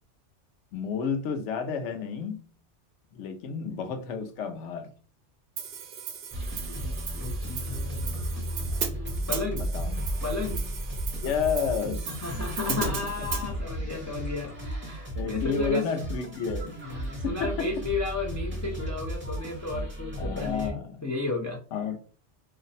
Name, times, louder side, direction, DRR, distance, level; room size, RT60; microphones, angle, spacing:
voice 1, 0.7-2.5 3.1-4.9 9.5-10.1 11.2-12.1 12.7-13.9 15.2-16.7 17.2-17.7 20.2-21.1 21.7-22.0, left 6 dB, 85° left, 0.9 m, -31 dB
Hi-hat, 5.6-13.5, right 7 dB, 60° right, 0.7 m, -37 dB
sound 1, 6.3-20.7, right 1 dB, 10° right, 0.6 m, -34 dB
voice 2, 6.6-8.2 9.3-9.6 10.2-10.6 12.2-15.8 16.8-21.6, left 3 dB, 30° left, 0.3 m, -33 dB
2.5 x 2.1 x 4.0 m
omnidirectional pair, 1.2 m